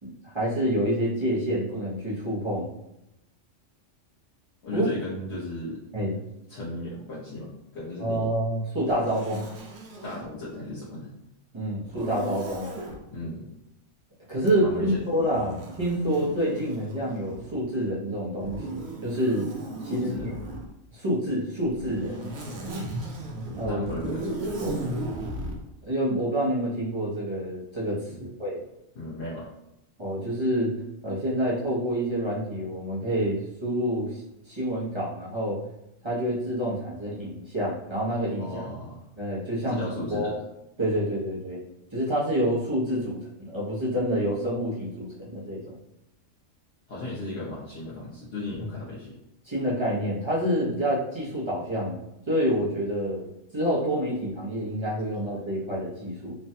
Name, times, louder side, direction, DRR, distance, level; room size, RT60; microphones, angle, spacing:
voice 1, 0.0-2.7 4.7-4.8 5.9-6.2 8.0-9.5 11.5-12.7 14.3-19.5 19.8-20.3 20.9-22.3 23.5-23.8 24.6-24.8 25.8-28.6 30.0-30.7 31.0-34.2 34.5-35.6 36.0-38.6 39.2-39.8 40.1-40.4 40.8-41.6 41.9-45.7 49.4-53.3 53.5-56.3, equal, 30° right, -7 dB, 0.6 m, -28 dB
voice 2, 4.6-5.8 6.5-8.3 10.0-11.1 13.1-13.5 14.6-15.0 19.8-20.3 23.6-24.6 28.1-28.3 28.9-29.5 38.4-39.1 39.7-40.3 46.9-49.2, left 2 dB, 60° left, -8 dB, 1.0 m, -36 dB
Zipper (clothing), 8.9-10.3 11.9-13.0 14.4-17.6 18.4-20.7 21.6-25.6, right 1 dB, 60° right, 0.8 m, -36 dB
3.2 x 2.2 x 2.7 m, 0.85 s
omnidirectional pair, 1.4 m